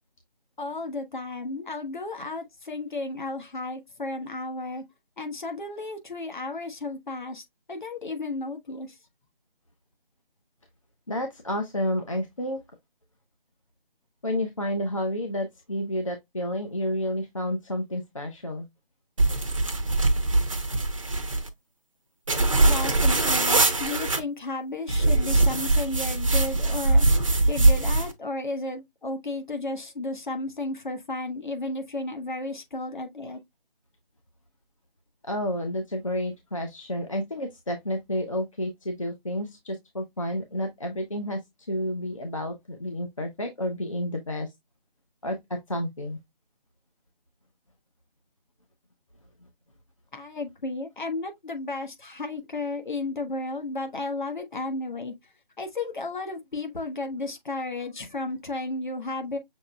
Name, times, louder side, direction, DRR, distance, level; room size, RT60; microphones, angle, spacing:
voice 1, 0.6-4.8 5.2-8.9 22.6-27.1 27.5-33.4 50.1-55.1 55.6-59.4, left 2 dB, 55° left, 1.5 m, -33 dB
voice 2, 11.1-12.6 14.2-18.7 35.3-41.4 41.7-44.5 45.2-46.2, left 1 dB, 35° left, 0.7 m, -30 dB
sound 1, 19.2-21.5 22.3-24.2 24.9-28.1, right 2 dB, 35° right, 0.7 m, -22 dB
6.4 x 3.2 x 2.3 m
figure-of-eight pair, 170°, 29 cm